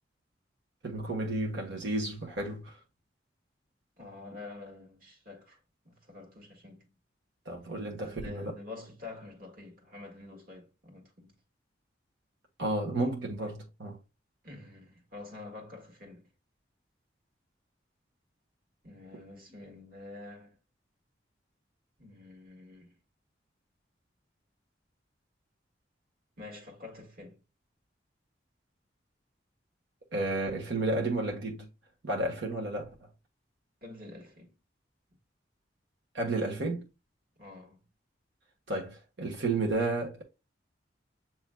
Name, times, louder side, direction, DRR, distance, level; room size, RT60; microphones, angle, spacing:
voice 1, 0.8-2.8 7.4-8.6 12.6-14.0 30.1-31.7 32.0-33.1 36.1-36.9 38.7-40.2, right 2 dB, 75° right, 1.3 m, -32 dB
voice 2, 4.0-7.0 8.0-11.4 14.4-16.3 18.8-20.6 22.0-23.0 26.4-27.4 33.8-34.5 37.4-37.9, left 3 dB, 50° right, 1.7 m, -47 dB
7.2 x 3.1 x 2.2 m
head